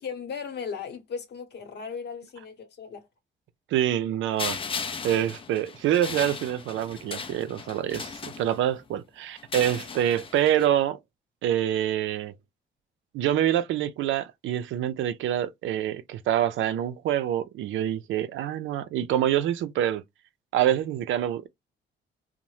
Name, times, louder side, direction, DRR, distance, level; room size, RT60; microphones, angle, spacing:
voice 1, 0.0-3.0, left 6 dB, 55° left, 0.9 m, -36 dB
voice 2, 3.7-4.6 5.0-11.0 11.4-12.3 13.1-20.0 20.5-21.5, right 11 dB, 75° right, 0.4 m, -26 dB
sound 1, 4.4-8.8 9.4-10.7, left 5 dB, 25° left, 0.4 m, -37 dB
2.6 x 2.1 x 3.1 m
cardioid pair, 90°, 20 cm